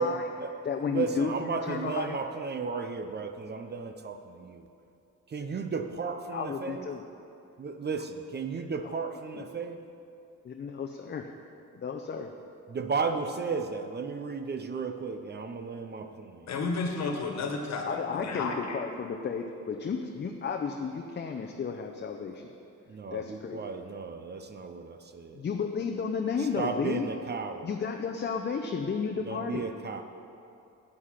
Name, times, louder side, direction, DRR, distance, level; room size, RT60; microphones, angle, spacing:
voice 1, 0.0-0.5 0.9-4.7 5.3-6.9 7.6-9.8 12.7-16.5 22.9-25.4 26.4-27.7 29.3-30.0, right 4 dB, 35° right, 7 dB, 0.7 m, -34 dB
voice 2, 0.6-2.2 6.3-7.0 8.8-9.0 9.3-9.5 10.4-11.3 11.7-12.3 17.7-22.5 23.1-23.6 25.3-27.1 27.6-29.6, left 5 dB, 35° left, 3 dB, 0.7 m, -33 dB
voice 3, 16.5-18.5, left 4 dB, 60° left, 3 dB, 1.6 m, -32 dB
9.7 x 8.6 x 5.8 m, 2.6 s
cardioid pair, 90°, 30 cm